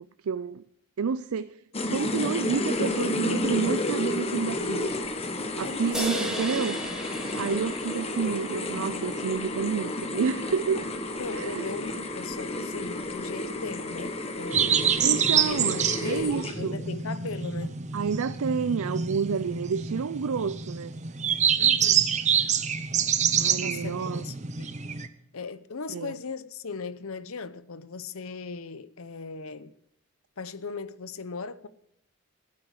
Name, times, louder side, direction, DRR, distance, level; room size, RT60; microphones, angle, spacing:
voice 1, 0.2-0.6 1.0-1.6 1.9-5.0 5.6-6.8 7.3-10.8 11.3-11.7 15.0-16.8 17.9-20.9 23.3-24.3 25.9-26.1, right 6 dB, 85° right, 0.4 m, -29 dB
sound 1, 1.7-16.8, left 2 dB, 25° left, 1.2 m, -31 dB
voice 2, 5.6-6.3 6.6-6.7 11.1-14.9 15.3-17.8 21.6-22.0 23.6-24.7 25.3-29.7 30.4-31.7, left 4 dB, 75° left, 0.8 m, -38 dB
sound 2, 5.9-9.4, equal, 5° right, 2.0 m, -36 dB
sound 3, 14.5-25.1, right 8 dB, 35° right, 0.8 m, -26 dB
17.5 x 8.5 x 6.4 m
head